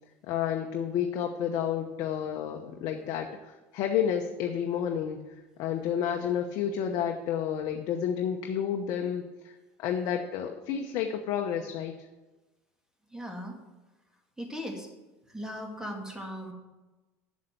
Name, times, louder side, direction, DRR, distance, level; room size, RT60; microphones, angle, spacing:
voice 1, 0.3-5.2 5.6-9.5 9.8-11.9, left 8 dB, 60° left, 3 dB, 1.0 m, -30 dB
voice 2, 13.1-13.6 14.4-14.9 15.3-16.5, equal, 5° right, 2 dB, 2.5 m, -38 dB
7.7 x 7.3 x 7.6 m, 1.1 s
hypercardioid pair, 80°, 8 cm